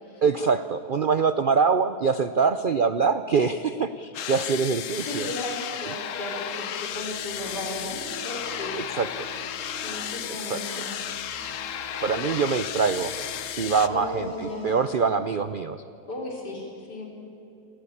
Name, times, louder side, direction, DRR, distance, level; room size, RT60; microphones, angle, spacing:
voice 1, 0.2-5.3 8.9-9.3 10.4-10.6 12.0-13.1 13.6-14.3 14.6-15.8, right 5 dB, 85° right, 11 dB, 0.4 m, -24 dB
sound 1, 4.1-13.9, left 10 dB, 60° left, 1.0 m, -34 dB
voice 2, 5.1-9.0 9.7-10.9 12.1-12.2 13.9-14.7 16.1-17.1, left 1 dB, 75° left, 0 dB, 4.3 m, -35 dB
sound 2, 6.8-14.8, equal, 45° left, 8.4 m, -44 dB
27.5 x 15.0 x 8.6 m, 2.8 s
omnidirectional pair, 1.8 m